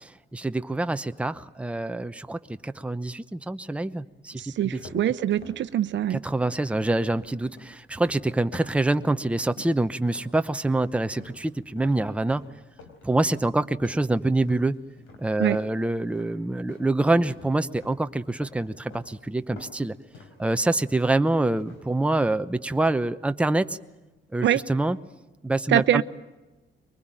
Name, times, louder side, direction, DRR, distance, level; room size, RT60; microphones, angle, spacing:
voice 1, 0.0-5.1 6.1-12.4 13.0-14.7 15.2-19.9 20.4-23.8 24.3-25.0 25.4-26.0, right 2 dB, 5° right, 10 dB, 0.8 m, -26 dB
sound 1, 4.4-9.3 9.6-10.3 10.6-16.9 17.2-18.0 18.4-19.1 19.4-21.3 21.6-22.0, left 2 dB, 90° left, 4.5 m, -48 dB
voice 2, 4.4-6.2 15.4-15.6 24.4-24.6 25.7-26.0, right 11 dB, 65° right, 14 dB, 0.8 m, -23 dB
23.5 x 20.5 x 9.0 m, 1.1 s
cardioid pair, 90°, 20 cm